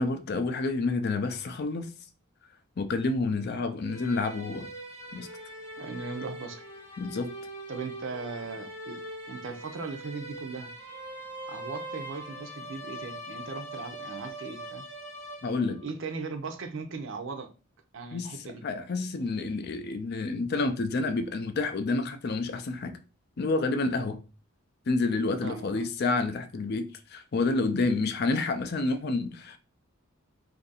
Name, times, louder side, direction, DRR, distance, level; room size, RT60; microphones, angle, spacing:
voice 1, 0.0-1.9 2.8-4.7 5.1-5.3 7.0-7.3 15.4-15.8 18.1-23.0 23.4-24.2 24.9-29.6, left 3 dB, 50° left, 0.4 m, -29 dB
sound 1, 3.8-15.9, right 1 dB, 10° left, 0.8 m, -42 dB
voice 2, 5.8-6.6 7.7-9.0 9.3-10.7 11.5-14.8 15.8-17.5 17.9-18.6 25.4-25.9, right 4 dB, 60° right, 0.5 m, -38 dB
2.7 x 2.5 x 4.0 m
head